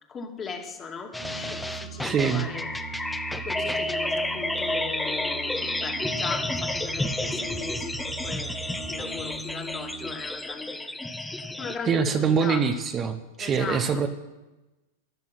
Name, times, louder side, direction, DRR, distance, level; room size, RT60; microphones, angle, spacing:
voice 1, 0.1-12.7 13.4-14.1, left 5 dB, 25° left, 3 dB, 2.4 m, -38 dB
sound 1, 1.1-11.8, left 1 dB, 5° left, 0.9 m, -31 dB
sound 2, 1.2-10.2, right 5 dB, 65° right, 3.2 m, -41 dB
voice 2, 2.0-2.5 11.9-14.1, right 6 dB, 30° right, 7 dB, 1.1 m, -24 dB
14.0 x 11.0 x 6.1 m, 1.0 s
hypercardioid pair, 110°, 0 cm